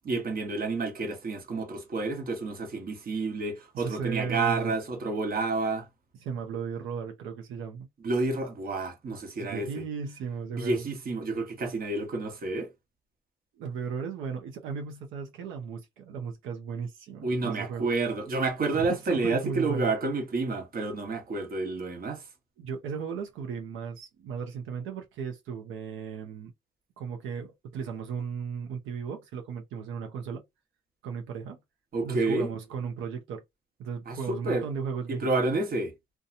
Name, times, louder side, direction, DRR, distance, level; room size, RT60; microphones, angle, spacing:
voice 1, 0.0-5.9 8.0-9.7 10.5-12.7 17.2-22.2 31.9-32.5 34.1-34.7 35.1-35.9, right 3 dB, 45° right, 1.0 m, -29 dB
voice 2, 3.7-4.7 6.2-7.9 9.3-10.9 13.6-17.9 18.8-19.9 22.6-26.5 27.0-30.4 31.0-31.6 32.0-33.4 33.8-35.3, right 6 dB, 85° right, 0.6 m, -36 dB
2.7 x 2.2 x 2.5 m
cardioid pair, 90°, 20 cm